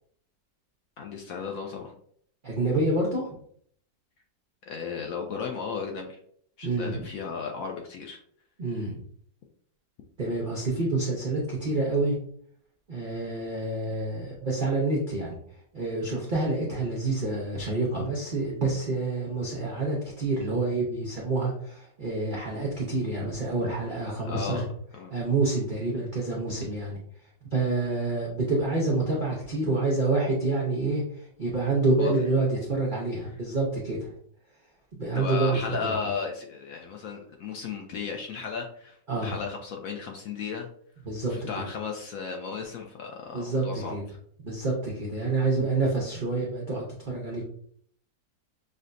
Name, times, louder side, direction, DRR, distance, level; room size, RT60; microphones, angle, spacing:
voice 1, 1.0-1.9 4.7-6.2 6.6-8.2 24.2-24.6 24.9-25.2 32.0-32.1 35.1-40.7 41.3-44.0, left 5 dB, 80° left, 2 dB, 0.7 m, -35 dB
voice 2, 2.4-3.4 6.6-7.1 8.6-9.0 10.2-12.1 12.9-15.4 15.7-24.7 25.1-27.0 27.5-34.1 35.0-35.9 39.1-39.4 41.0-41.6 43.3-44.0 44.4-47.4, right 2 dB, 80° right, -3 dB, 0.4 m, -27 dB
6.4 x 2.2 x 2.5 m, 0.64 s
omnidirectional pair, 2.0 m